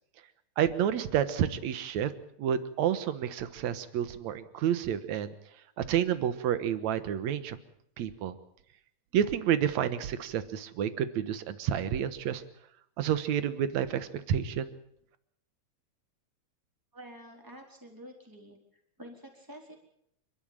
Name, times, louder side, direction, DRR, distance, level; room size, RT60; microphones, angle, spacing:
voice 1, 0.6-2.1 2.4-5.3 5.8-7.6 8.0-8.4 9.1-12.4 13.0-14.7, right 9 dB, 70° right, 12 dB, 2.4 m, -29 dB
voice 2, 16.9-18.6 19.0-19.8, equal, 5° right, 1 dB, 4.2 m, -48 dB
27.0 x 12.5 x 9.0 m, 0.73 s
omnidirectional pair, 3.5 m